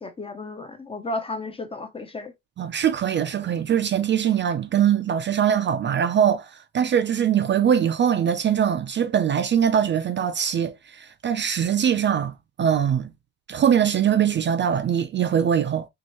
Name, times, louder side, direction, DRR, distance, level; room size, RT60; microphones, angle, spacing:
voice 1, 0.0-2.3, left 2 dB, 15° left, 0.5 m, -33 dB
voice 2, 2.6-13.1 13.5-15.9, right 9 dB, 35° right, 0.4 m, -22 dB
4.5 x 3.2 x 2.9 m
cardioid pair, 165°, 32 cm